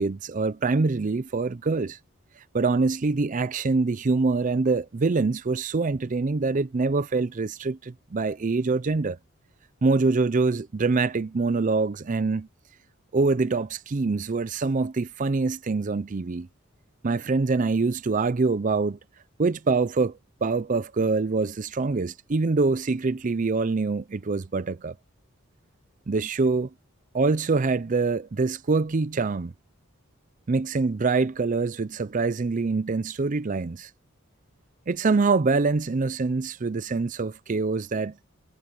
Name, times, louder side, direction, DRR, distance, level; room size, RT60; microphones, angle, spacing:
voice 1, 0.0-2.0 2.5-9.2 9.8-12.5 13.1-16.5 17.0-19.0 19.4-24.9 26.1-26.7 27.1-29.5 30.5-33.9 34.9-38.1, right 3 dB, 35° right, 0.5 m, -25 dB
head